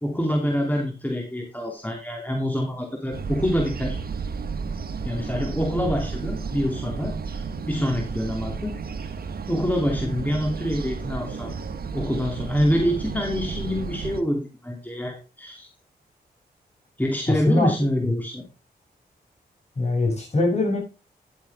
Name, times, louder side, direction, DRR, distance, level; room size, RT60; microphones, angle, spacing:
voice 1, 0.0-4.0 5.0-8.7 9.0-9.1 9.5-11.5 11.9-15.7 17.0-18.5, equal, 10° left, 1 dB, 2.6 m, -26 dB
sound 1, 3.1-14.2, right 5 dB, 60° right, 1.5 m, -32 dB
voice 2, 17.3-17.7 19.8-20.8, left 2 dB, 40° left, 1 dB, 6.9 m, -22 dB
11.0 x 8.5 x 3.5 m, 0.30 s
cardioid pair, 75°, 17 cm